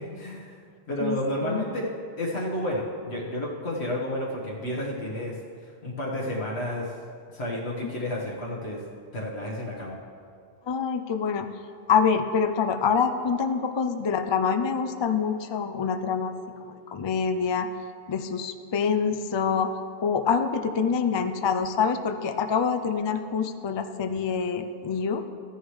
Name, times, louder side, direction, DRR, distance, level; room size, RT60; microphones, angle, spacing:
voice 1, 0.1-0.6 0.9-1.9 2.2-5.4 5.8-6.9 7.3-8.8 9.1-10.0, left 1 dB, 80° left, -5 dB, 1.6 m, -31 dB
voice 2, 10.7-11.5 11.9-16.3 16.6-17.7 18.1-19.7 20.0-25.3, left 6 dB, 40° left, 8 dB, 0.4 m, -26 dB
14.0 x 10.0 x 3.2 m, 2.3 s
omnidirectional pair, 1.1 m